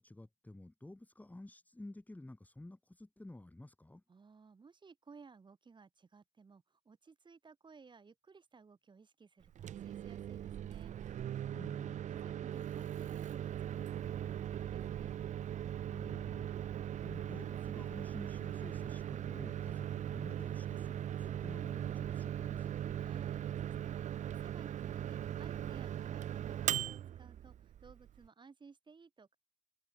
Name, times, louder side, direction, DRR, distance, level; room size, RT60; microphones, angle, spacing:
voice 1, 0.0-4.0 11.5-12.0 15.9-22.8, left 2 dB, 10° left, 4.1 m, -52 dB
voice 2, 4.1-11.3 11.7-15.2 23.0-29.4, right 5 dB, 25° right, 3.6 m, -59 dB
Microwave oven, 9.4-28.3, right 10 dB, 45° right, 0.6 m, -39 dB
cardioid pair, 110°, 17 cm